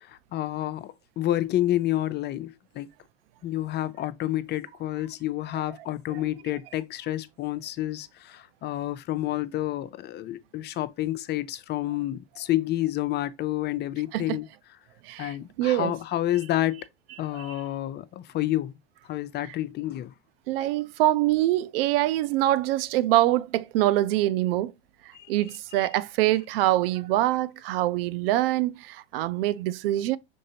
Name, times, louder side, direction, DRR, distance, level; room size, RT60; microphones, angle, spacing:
voice 1, 0.3-2.9 3.4-14.5 15.2-16.8 17.2-18.7 19.1-20.1 25.1-25.3 25.8-25.9, left 14 dB, 35° left, 0.4 m, -29 dB
voice 2, 15.1-15.9 17.3-17.6 19.5-19.6 20.5-24.7 25.3-30.2, right 15 dB, 70° right, 0.5 m, -24 dB
5.3 x 3.8 x 2.7 m
hypercardioid pair, 90°, 31 cm